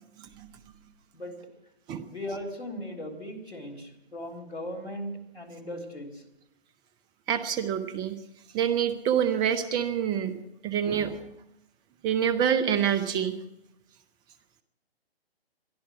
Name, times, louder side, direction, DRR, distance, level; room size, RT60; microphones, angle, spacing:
voice 1, 0.2-0.5 1.9-2.0 7.3-8.1 8.5-10.3 10.6-11.2 12.0-13.4, right 9 dB, 15° right, 12 dB, 0.7 m, -26 dB
voice 2, 2.1-6.2, equal, 90° left, 3 dB, 4.0 m, -38 dB
22.5 x 13.0 x 4.7 m, 0.90 s
figure-of-eight pair, 135°, 32 cm